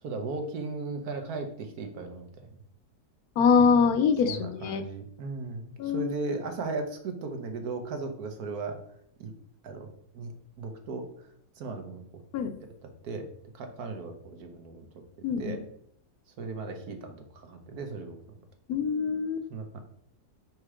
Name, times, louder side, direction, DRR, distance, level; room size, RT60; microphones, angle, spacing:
voice 1, 0.0-2.6 3.6-3.7 4.3-8.8 9.2-9.3 9.6-9.9 10.1-11.3 11.6-12.0 12.8-13.3 13.5-14.9 15.4-15.6 16.4-18.2 19.5-19.8, right 3 dB, 70° right, 6 dB, 1.4 m, -36 dB
voice 2, 3.4-4.8 5.8-6.1 12.3-12.5 15.2-15.6 18.7-19.5, left 6 dB, 75° left, 8 dB, 1.1 m, -24 dB
4.8 x 4.4 x 4.9 m, 0.66 s
omnidirectional pair, 1.7 m